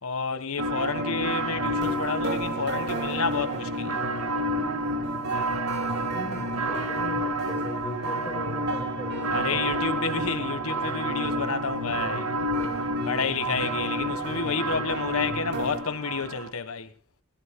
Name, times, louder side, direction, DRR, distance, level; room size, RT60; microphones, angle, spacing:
voice 1, 0.0-4.0 9.3-12.3 13.1-16.9, left 5 dB, 75° left, 1.4 m, -30 dB
sound 1, 0.6-16.5, right 1 dB, 85° right, 2.1 m, -30 dB
sound 2, 0.7-15.8, right 2 dB, 50° right, 2.3 m, -37 dB
voice 2, 5.5-9.7 13.2-13.4, equal, 10° left, 5.1 m, -39 dB
21.5 x 18.0 x 2.2 m
head